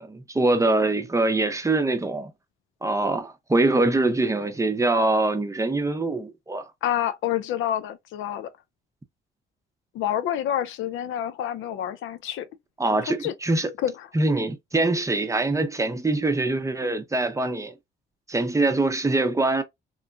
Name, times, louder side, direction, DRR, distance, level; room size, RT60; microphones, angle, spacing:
voice 1, 0.0-2.3 2.8-6.7 12.8-13.7 14.1-17.8 18.3-19.6, right 2 dB, 15° right, 0.6 m, -23 dB
voice 2, 6.8-8.5 9.9-12.5 13.0-13.3 13.8-14.1, left 11 dB, 80° left, 0.5 m, -28 dB
3.1 x 2.1 x 2.4 m
cardioid pair, 90°, 20 cm